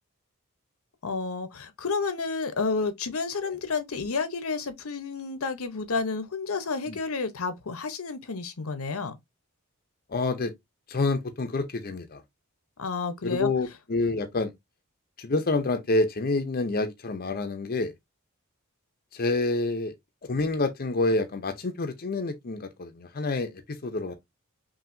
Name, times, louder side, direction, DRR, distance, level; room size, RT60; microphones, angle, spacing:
voice 1, 1.0-9.2 12.8-13.5, left 4 dB, 75° left, 0.8 m, -30 dB
voice 2, 10.1-10.5 10.9-12.2 13.2-14.5 15.2-17.9 19.1-19.9 20.2-24.1, left 2 dB, 40° left, 0.6 m, -28 dB
5.6 x 2.7 x 2.6 m
head